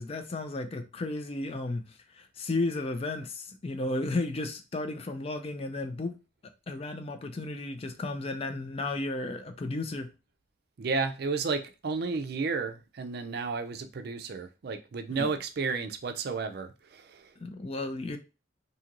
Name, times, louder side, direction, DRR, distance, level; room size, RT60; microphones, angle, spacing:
voice 1, 0.0-1.8 2.2-6.1 6.7-10.1 15.1-15.3 17.4-18.2, left 2 dB, 30° left, 0.4 m, -33 dB
voice 2, 10.8-17.3, right 4 dB, 55° right, 0.4 m, -32 dB
2.7 x 2.5 x 2.9 m
head